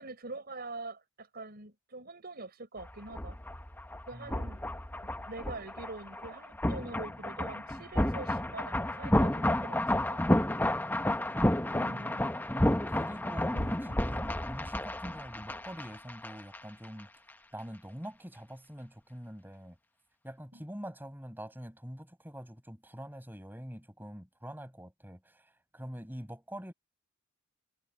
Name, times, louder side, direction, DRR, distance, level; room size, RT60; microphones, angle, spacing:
voice 1, 0.0-3.4 4.1-4.6 5.2-10.2 10.8-10.9 11.7-12.3 13.5-14.0 20.5-20.6, right 3 dB, 50° right, 5.1 m, -44 dB
sound 1, 2.8-16.6 16.8-17.0, left 1 dB, 10° left, 0.9 m, -31 dB
voice 2, 4.1-4.5 11.9-17.1 17.5-19.8 20.2-26.7, equal, 10° right, 7.9 m, -45 dB
head